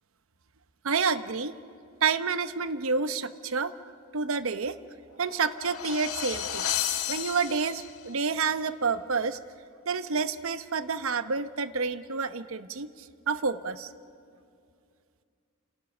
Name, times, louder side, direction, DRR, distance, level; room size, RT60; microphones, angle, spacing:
voice 1, 0.8-1.5 2.0-3.7 4.1-4.8 5.2-6.7 7.1-9.4 9.9-13.9, right 5 dB, 65° right, 12 dB, 0.8 m, -29 dB
sound 1, 5.1-8.1, left 10 dB, 80° left, 1.4 m, -33 dB
30.0 x 27.0 x 6.1 m, 2.4 s
head